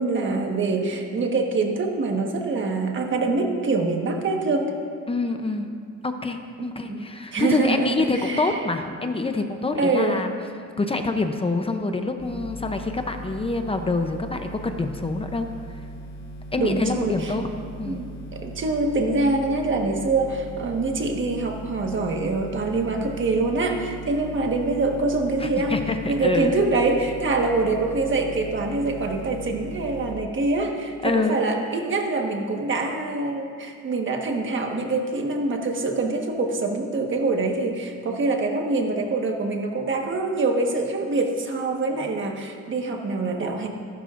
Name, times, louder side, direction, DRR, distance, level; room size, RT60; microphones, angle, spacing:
voice 1, 0.0-4.8 6.6-7.1 7.3-8.6 9.8-10.2 16.6-17.3 17.9-25.8 26.1-43.7, right 3 dB, 40° right, 2 dB, 1.5 m, -25 dB
voice 2, 5.1-5.7 6.0-10.3 10.8-15.8 16.5-17.5 17.8-18.0 25.4-26.5 31.0-31.5, left 3 dB, 20° left, 6 dB, 0.6 m, -26 dB
sound 1, 12.2-30.1, right 1 dB, 40° left, 4.1 m, -39 dB
25.5 x 12.0 x 2.6 m, 2.2 s
cardioid pair, 155°, 31 cm